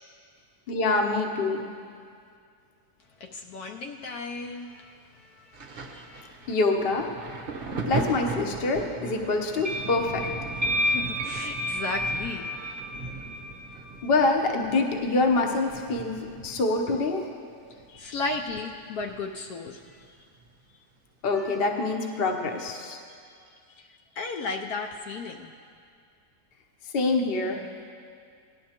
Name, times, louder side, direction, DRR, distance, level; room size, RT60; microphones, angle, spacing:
voice 1, 0.7-1.6 6.5-7.1 7.9-10.3 14.0-17.2 21.2-23.0 26.9-27.6, left 3 dB, 45° left, 2 dB, 0.9 m, -25 dB
voice 2, 3.2-4.9 5.4-6.4 10.8-12.9 16.9-17.0 17.9-19.8 20.1-20.2 21.4-21.6 22.0-22.1 23.1-23.4 23.7-23.9 24.2-25.5, left 3 dB, 70° left, 2 dB, 1.0 m, -35 dB
Thunder, 5.5-18.9 19.1-20.5 21.3-21.5, right 3 dB, 50° right, 0.7 m, -39 dB
sound 1, 9.6-14.1, left 1 dB, 25° right, 1.0 m, -31 dB
17.5 x 11.5 x 2.9 m, 2.3 s
omnidirectional pair, 1.8 m